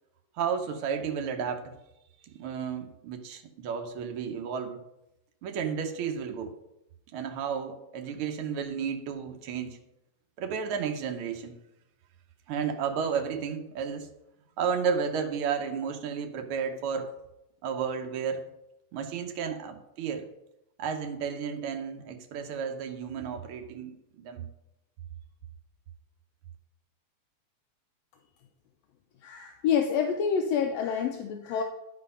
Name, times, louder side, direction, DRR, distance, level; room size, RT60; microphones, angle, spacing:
voice 1, 0.4-1.7 2.2-4.8 5.4-6.5 7.1-9.8 10.4-11.6 12.5-14.1 14.6-17.1 17.6-18.4 18.9-20.3 20.8-24.5, right 6 dB, 70° right, 5 dB, 1.3 m, -32 dB
voice 2, 29.2-31.6, left 7 dB, 75° left, 4 dB, 1.6 m, -27 dB
11.0 x 4.3 x 5.5 m, 0.89 s
omnidirectional pair, 3.4 m